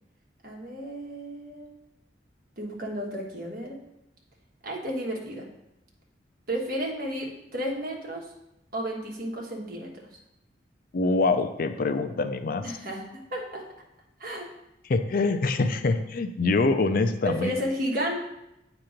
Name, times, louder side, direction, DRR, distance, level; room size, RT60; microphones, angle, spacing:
voice 1, 0.4-1.7 2.6-3.8 4.6-5.5 6.5-8.3 8.7-10.1 12.6-13.6 14.2-14.5 17.2-18.2, equal, 55° right, -1 dB, 1.3 m, -32 dB
voice 2, 10.9-12.6 14.9-17.5, left 3 dB, 50° left, 9 dB, 0.4 m, -24 dB
8.6 x 3.0 x 5.0 m, 0.87 s
head